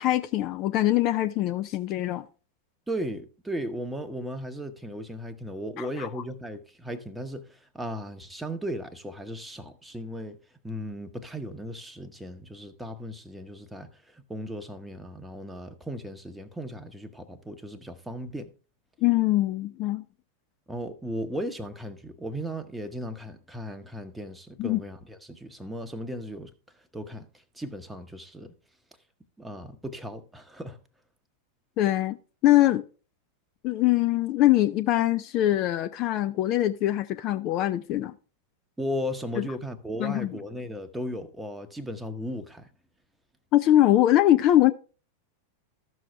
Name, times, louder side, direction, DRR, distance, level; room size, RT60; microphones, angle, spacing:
voice 1, 0.0-2.2 5.8-6.1 19.0-20.0 24.6-24.8 31.8-32.2 32.4-32.8 33.6-38.1 39.4-39.5 40.0-40.3 43.5-44.7, left 14 dB, 40° left, 0.4 m, -23 dB
voice 2, 2.9-10.4 10.6-18.5 20.7-26.5 26.9-27.3 27.5-28.5 29.4-30.8 38.8-42.7, equal, 5° right, 0.9 m, -36 dB
14.0 x 6.3 x 3.3 m
figure-of-eight pair, 90°, 0 cm